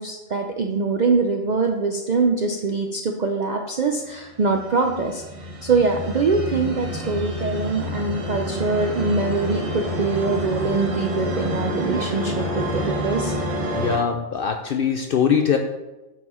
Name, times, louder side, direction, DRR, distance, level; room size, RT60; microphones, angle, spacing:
voice 1, 0.0-5.2 5.6-13.3, right 4 dB, 60° right, 3 dB, 0.4 m, -23 dB
sound 1, 4.3-14.0, equal, 30° right, 0.9 m, -28 dB
voice 2, 13.7-15.6, left 7 dB, 65° left, 5 dB, 0.5 m, -21 dB
8.0 x 4.6 x 4.3 m, 1.1 s
omnidirectional pair, 1.4 m